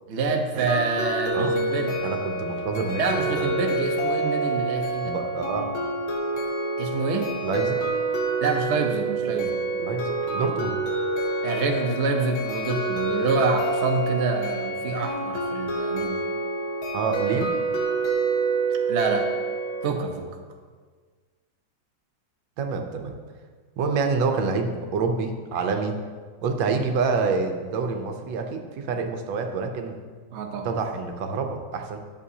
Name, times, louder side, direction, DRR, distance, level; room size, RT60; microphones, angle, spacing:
voice 1, 0.1-1.9 3.0-5.1 6.8-7.3 8.4-9.6 11.4-16.2 18.9-19.3 19.8-20.3 30.3-30.7, right 4 dB, 55° right, 2 dB, 0.8 m, -27 dB
sound 1, 0.7-19.9, right 2 dB, 85° left, 1.8 m, -27 dB
voice 2, 2.0-3.5 5.0-5.7 7.4-7.8 9.8-10.7 16.9-17.5 22.6-23.1 23.8-25.9 26.4-30.0 30.6-32.0, right 4 dB, 75° right, 4 dB, 1.4 m, -27 dB
11.0 x 7.1 x 2.8 m, 1.5 s
omnidirectional pair, 2.2 m